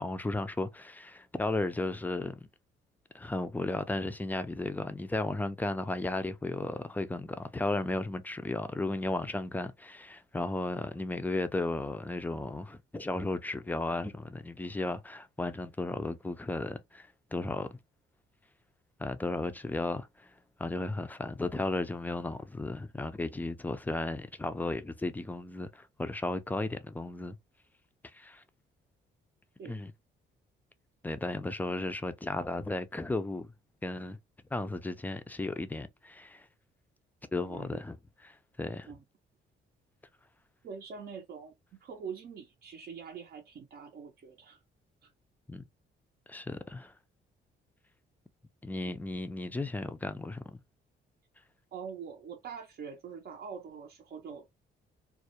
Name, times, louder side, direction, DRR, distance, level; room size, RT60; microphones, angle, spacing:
voice 1, 0.0-2.5 3.1-17.8 19.0-20.3 20.6-27.4 28.1-28.4 29.6-29.9 31.0-33.5 33.8-34.2 34.5-36.5 37.3-38.0 38.2-38.9 45.5-45.7 46.3-46.9 48.6-50.6, left 2 dB, 10° left, 0.3 m, -34 dB
voice 2, 37.5-37.8 38.9-39.0 40.6-44.6 45.0-45.1 48.8-48.9 51.7-54.5, right 6 dB, 55° right, 0.5 m, -44 dB
2.2 x 2.1 x 2.8 m
cardioid pair, 90°, 20 cm